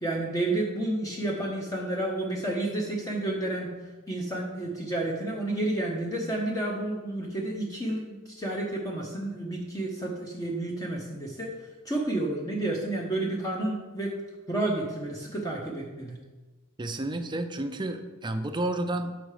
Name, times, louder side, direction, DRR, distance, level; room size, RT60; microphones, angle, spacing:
voice 1, 0.0-3.7 4.1-14.1 14.5-16.2, right 2 dB, 15° left, -1 dB, 0.7 m, -30 dB
voice 2, 16.8-19.2, right 1 dB, 20° right, 7 dB, 0.5 m, -31 dB
6.5 x 5.1 x 4.8 m, 1.2 s
head